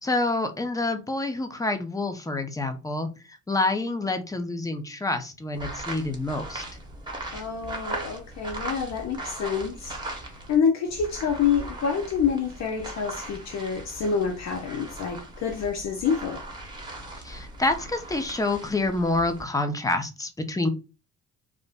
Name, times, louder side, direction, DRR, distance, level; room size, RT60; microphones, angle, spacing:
voice 1, 0.0-6.6 17.2-20.7, left 2 dB, 10° left, 0.5 m, -27 dB
sound 1, 5.5-10.6 10.9-19.4, right 2 dB, 15° right, 0.9 m, -39 dB
voice 2, 7.3-16.4, left 6 dB, 60° left, 0.6 m, -27 dB
2.5 x 2.1 x 3.4 m
cardioid pair, 90°, 30 cm